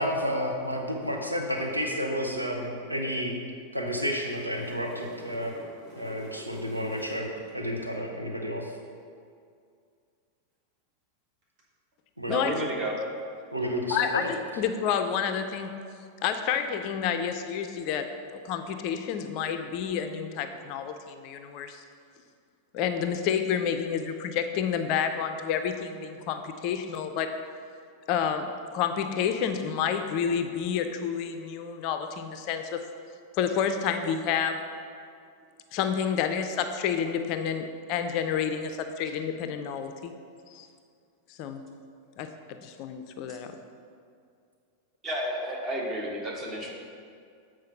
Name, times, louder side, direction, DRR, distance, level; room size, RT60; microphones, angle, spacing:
voice 1, 0.0-3.4 3.7-5.6 5.9-8.7 12.2-12.3 13.5-14.2, equal, 85° right, 1 dB, 0.8 m, -31 dB
sound 1, 4.2-7.6 11.4-11.6, right 1 dB, 50° right, 1.8 m, -48 dB
voice 2, 12.3-12.9 31.4-31.5 43.3-43.4 45.0-46.7, right 1 dB, 25° right, -3 dB, 1.8 m, -31 dB
voice 3, 13.9-15.7 16.2-21.8 22.7-27.3 28.1-32.8 33.4-34.6 35.7-40.1 40.5-40.7 41.4-41.6 42.2-43.5, left 7 dB, 45° left, 7 dB, 0.5 m, -29 dB
7.5 x 4.7 x 5.8 m, 2.3 s
figure-of-eight pair, 90°, 0 cm